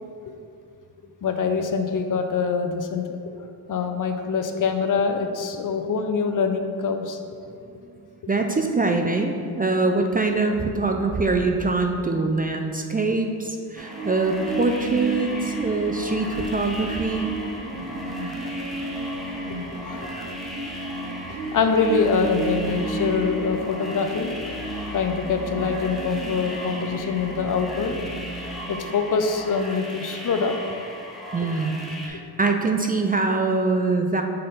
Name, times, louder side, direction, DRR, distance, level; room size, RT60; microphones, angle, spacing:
voice 1, 1.2-3.0 3.7-7.2 18.4-18.5 19.3-20.3 20.6-20.7 21.5-28.0 28.5-30.6, left 5 dB, 50° left, 6 dB, 0.6 m, -25 dB
voice 2, 8.3-17.3 31.3-34.2, right 3 dB, 25° right, 4 dB, 0.4 m, -24 dB
sound 1, 13.8-32.1, equal, ahead, 1.0 m, -37 dB
sound 2, 13.8-28.5, right 2 dB, 90° right, 0.8 m, -33 dB
6.6 x 3.7 x 4.0 m, 2.3 s
cardioid pair, 70°, 39 cm